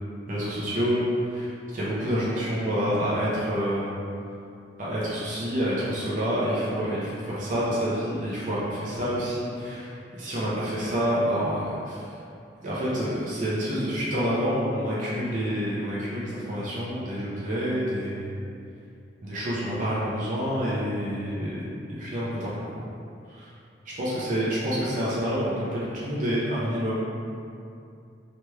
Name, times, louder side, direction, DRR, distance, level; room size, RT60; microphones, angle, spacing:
voice 1, 0.3-4.0 4.8-12.0 12.6-18.3 19.2-21.6 21.9-22.8 23.3-23.5 23.8-27.0, equal, 45° right, -8 dB, 0.6 m, -28 dB
3.1 x 2.9 x 2.2 m, 2.5 s
head